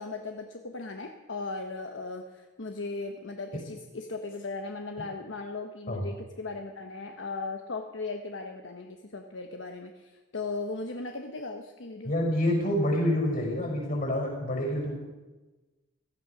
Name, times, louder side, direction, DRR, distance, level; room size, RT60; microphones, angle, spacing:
voice 1, 0.0-12.1, left 3 dB, 75° left, 4 dB, 1.0 m, -37 dB
voice 2, 12.0-14.9, left 1 dB, 50° left, 1 dB, 5.7 m, -27 dB
16.5 x 13.0 x 6.0 m, 1.2 s
head